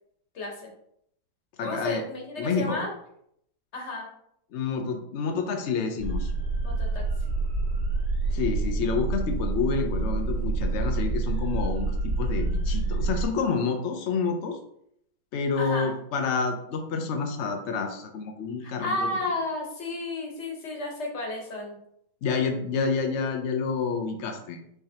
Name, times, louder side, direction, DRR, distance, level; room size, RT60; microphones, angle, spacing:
voice 1, 0.3-0.7 1.6-2.9 3.7-4.1 6.6-7.0 15.6-15.9 18.6-21.8, left 2 dB, 45° left, 0 dB, 1.2 m, -32 dB
voice 2, 1.6-2.0 2.4-2.8 4.5-6.3 8.3-14.6 15.3-18.9 22.2-24.6, left 5 dB, 85° left, 4 dB, 0.6 m, -28 dB
sound 1, 6.0-13.3, right 3 dB, 80° right, 2.1 m, -27 dB
5.7 x 3.3 x 2.8 m, 0.72 s
omnidirectional pair, 1.9 m